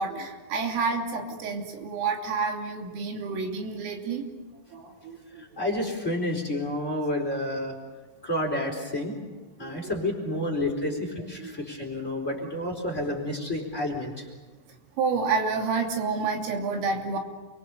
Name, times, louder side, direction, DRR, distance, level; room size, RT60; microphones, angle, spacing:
voice 1, 0.0-4.3 4.7-5.4 9.6-10.4 11.4-11.5 15.0-17.2, right 4 dB, 90° right, 2 dB, 5.5 m, -29 dB
voice 2, 5.4-7.7 8.2-9.2 9.6-14.3, left 1 dB, 15° left, 3 dB, 3.9 m, -30 dB
29.0 x 24.0 x 6.9 m, 1.3 s
omnidirectional pair, 5.7 m